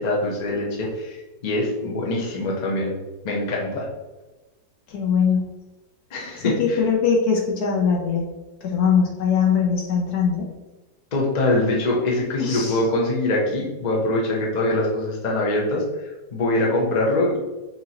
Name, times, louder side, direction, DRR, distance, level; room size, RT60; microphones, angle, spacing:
voice 1, 0.0-3.0 3.2-3.9 6.1-6.8 11.1-17.4, left 1 dB, 40° left, -3 dB, 0.6 m, -23 dB
voice 2, 4.9-5.5 6.4-8.3 8.6-10.5 12.4-12.8, left 6 dB, 65° left, -1 dB, 1.3 m, -21 dB
5.7 x 2.9 x 2.8 m, 1.1 s
omnidirectional pair, 1.9 m